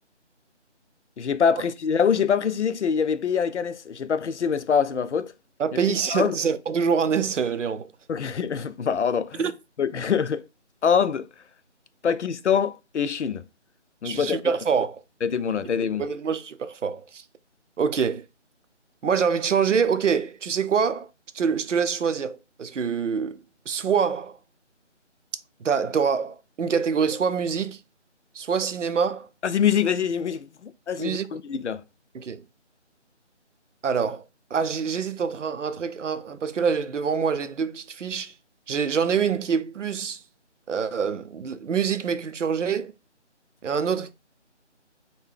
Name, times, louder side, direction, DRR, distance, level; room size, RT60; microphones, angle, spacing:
voice 1, 1.2-5.3 6.1-6.3 8.1-9.5 9.8-10.5 10.8-11.3 12.0-13.4 14.0-14.4 15.2-16.0 29.4-31.8, left 7 dB, 70° left, 0.5 m, -24 dB
voice 2, 5.6-7.9 9.4-9.5 14.0-15.0 16.0-17.2 17.8-18.2 19.0-21.1 21.3-24.4 25.6-27.8 28.3-29.3 31.0-31.3 32.1-32.4 33.8-34.2 34.5-38.3 38.7-40.2 40.7-42.9 43.6-44.1, right 6 dB, 90° right, 0.6 m, -25 dB
3.7 x 2.2 x 3.4 m
figure-of-eight pair, 170°, 36 cm